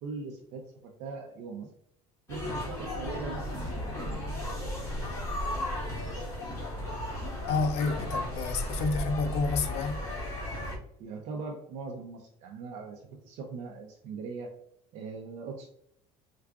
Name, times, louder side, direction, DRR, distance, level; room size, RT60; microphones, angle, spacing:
voice 1, 0.0-1.7 2.3-4.4 11.0-14.5 14.9-15.7, right 4 dB, 55° right, 0.5 m, -40 dB
sound 1, 2.3-10.8, left 1 dB, 20° left, 1.2 m, -35 dB
sound 2, 3.3-4.2 4.5-4.6 4.9-5.1 6.3-7.4 7.9-10.2, right 1 dB, 10° right, 0.6 m, -41 dB
voice 2, 7.5-10.0, left 4 dB, 50° left, 0.4 m, -29 dB
4.6 x 2.3 x 2.3 m
cardioid pair, 165°, 14 cm